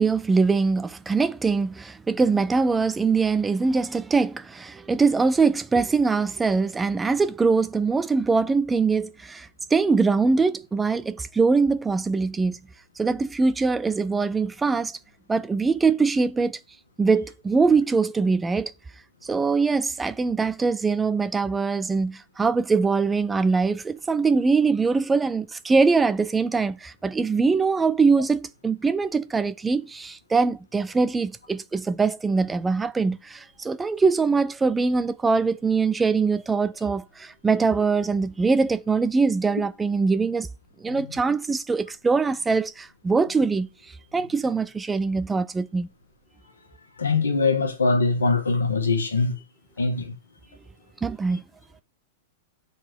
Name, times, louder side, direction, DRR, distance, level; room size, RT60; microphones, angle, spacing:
voice 1, 0.0-12.6 13.0-15.0 15.3-16.6 17.0-18.7 19.2-40.5 40.8-43.7 44.1-45.9 51.0-51.4, right 4 dB, 15° right, 0.4 m, -22 dB
voice 2, 47.0-49.3 49.8-50.1, left 3 dB, 75° left, 1.7 m, -22 dB
7.5 x 4.1 x 4.6 m
figure-of-eight pair, 100°, 0 cm